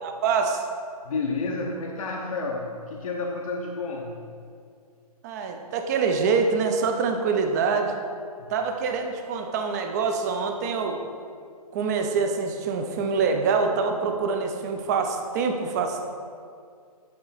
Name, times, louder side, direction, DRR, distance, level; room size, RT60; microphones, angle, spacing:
voice 1, 0.0-0.6 5.2-7.9 8.5-11.0 11.7-16.1, right 5 dB, 25° right, 4 dB, 0.5 m, -25 dB
voice 2, 1.0-4.3 8.4-8.5, left 3 dB, 60° left, 0 dB, 0.7 m, -30 dB
8.6 x 3.9 x 4.1 m, 2.3 s
figure-of-eight pair, 130°, 20 cm